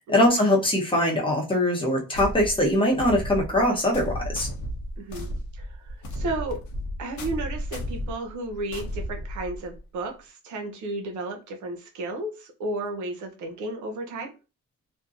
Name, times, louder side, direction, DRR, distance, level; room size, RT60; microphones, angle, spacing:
voice 1, 0.1-4.5, left 1 dB, 15° left, -1 dB, 0.7 m, -22 dB
sound 1, 2.1-9.8, equal, 70° left, 0.8 m, -34 dB
voice 2, 5.0-5.3 5.5-6.6 7.0-14.3, right 2 dB, 75° right, 3 dB, 0.7 m, -33 dB
2.7 x 2.1 x 2.4 m, 0.32 s
cardioid pair, 90°, 30 cm